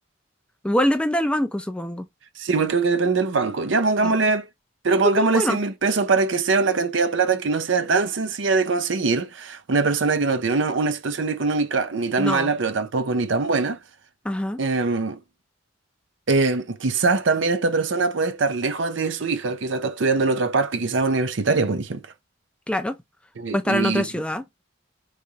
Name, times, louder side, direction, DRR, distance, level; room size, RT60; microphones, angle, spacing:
voice 1, 0.6-2.1 4.0-4.1 5.0-5.6 12.2-12.5 14.2-14.6 22.7-23.0 23.5-24.4, left 1 dB, 5° left, 0.4 m, -24 dB
voice 2, 2.4-4.5 4.8-13.8 14.6-15.2 16.3-22.0 23.4-24.1, right 4 dB, 65° right, 0.6 m, -22 dB
4.8 x 3.2 x 2.8 m
head